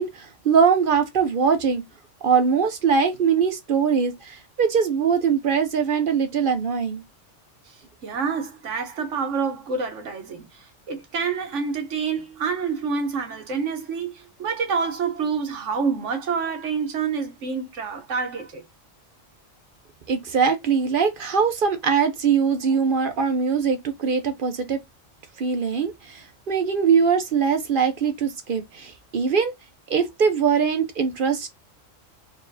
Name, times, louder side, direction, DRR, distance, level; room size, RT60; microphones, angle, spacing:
voice 1, 0.0-1.8 2.2-7.0 20.1-24.8 25.4-29.5 29.9-31.5, right 6 dB, 50° right, 0.9 m, -22 dB
voice 2, 7.7-18.6, right 5 dB, 70° right, 1.2 m, -28 dB
4.1 x 3.2 x 2.6 m
omnidirectional pair, 1.3 m